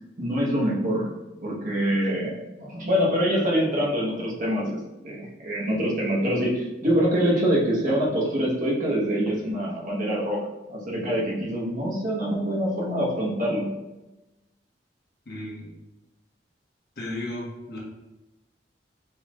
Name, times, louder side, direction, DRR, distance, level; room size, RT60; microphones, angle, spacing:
voice 1, 0.2-1.1 1.4-2.3 2.6-13.7, equal, 45° right, -4 dB, 1.2 m, -25 dB
voice 2, 15.3-15.7 17.0-17.8, left 1 dB, 60° left, -3 dB, 1.3 m, -34 dB
4.8 x 4.4 x 2.3 m, 1.0 s
head